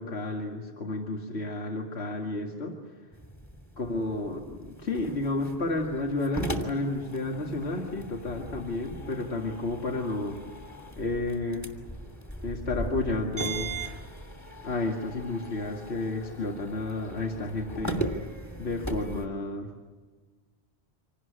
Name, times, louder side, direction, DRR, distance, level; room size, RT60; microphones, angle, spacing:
voice 1, 0.0-2.8 3.8-10.4 11.0-11.7 12.4-13.7 14.6-18.0 18.6-19.7, left 2 dB, 65° left, 1 dB, 2.3 m, -31 dB
sound 1, 3.1-19.3, right 2 dB, 15° left, 2.7 m, -38 dB
26.0 x 18.5 x 9.8 m, 1.4 s
omnidirectional pair, 1.2 m